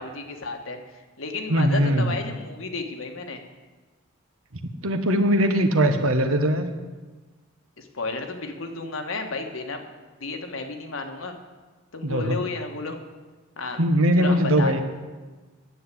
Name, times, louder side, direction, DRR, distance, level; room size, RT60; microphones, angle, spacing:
voice 1, 0.0-3.4 7.8-9.8 10.2-11.4 11.9-13.0 13.6-13.8 14.2-14.8, left 3 dB, 75° left, 5 dB, 1.5 m, -32 dB
voice 2, 1.5-2.1 4.8-6.7 12.0-12.4 13.8-14.8, equal, 90° right, 7 dB, 1.3 m, -20 dB
10.5 x 8.0 x 8.6 m, 1.3 s
head